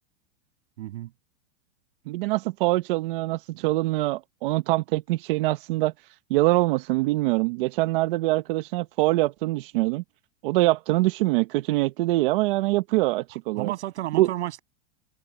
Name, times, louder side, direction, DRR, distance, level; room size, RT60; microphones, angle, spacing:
voice 1, 0.8-1.1 13.5-14.6, right 14 dB, 70° right, 7.0 m, -32 dB
voice 2, 2.1-5.9 6.3-10.0 10.4-13.7 14.1-14.3, right 19 dB, 50° right, 0.9 m, -24 dB
supercardioid pair, 160°, 35 cm